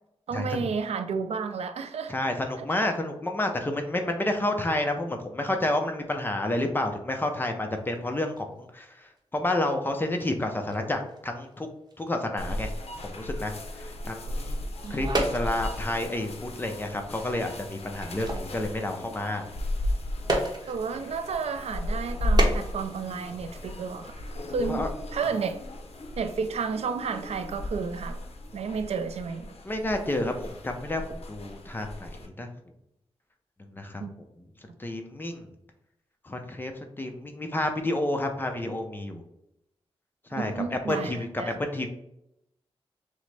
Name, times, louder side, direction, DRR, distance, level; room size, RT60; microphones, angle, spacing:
voice 1, 0.3-2.1 2.6-2.7 14.8-15.0 20.7-24.2 24.5-24.9 25.1-25.6 26.2-28.2 28.5-29.5 34.0-34.1 40.3-41.6, right 5 dB, 80° right, 8 dB, 0.4 m, -31 dB
voice 2, 2.1-9.1 9.3-11.7 12.0-12.7 13.0-13.5 13.8-14.6 14.9-19.5 24.7-24.9 29.6-32.5 33.7-34.0 34.8-35.4 36.2-36.7 37.0-39.2 40.3-41.9, left 1 dB, 20° left, 4 dB, 0.5 m, -30 dB
sound 1, 7.7-9.2 9.5-14.1 14.5-21.3 21.9-23.7 24.0-24.1, right 1 dB, 40° right, 0.8 m, -35 dB
sound 2, 12.4-32.3, left 1 dB, 70° left, 0.6 m, -34 dB
6.2 x 2.1 x 3.3 m, 0.83 s
wide cardioid pair, 150°, 11 cm